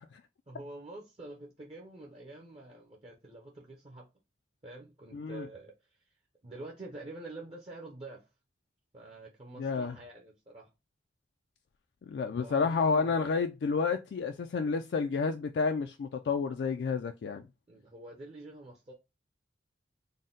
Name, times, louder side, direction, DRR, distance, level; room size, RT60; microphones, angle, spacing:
voice 1, 0.5-4.1 4.6-8.3 8.9-10.7 12.4-13.4 17.7-18.9, right 2 dB, 30° right, 0.6 m, -47 dB
voice 2, 5.1-5.5 9.6-9.9 12.1-17.4, left 5 dB, 65° left, 0.3 m, -30 dB
3.9 x 2.1 x 3.7 m
head